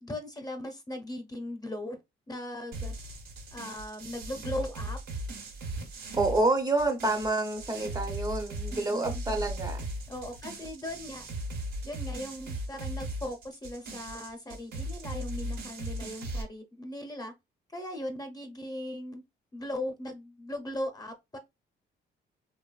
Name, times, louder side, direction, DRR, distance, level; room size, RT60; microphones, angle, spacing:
voice 1, 0.0-2.0 2.3-2.9 3.5-5.0 8.7-9.2 10.1-11.2 11.8-17.3 17.7-19.2 19.5-21.4, left 1 dB, 20° left, 0.7 m, -38 dB
sound 1, 2.7-16.4, right 1 dB, 90° right, 1.1 m, -38 dB
voice 2, 6.1-9.9, right 2 dB, 20° right, 0.6 m, -28 dB
2.9 x 2.3 x 2.3 m
cardioid pair, 90°, 20 cm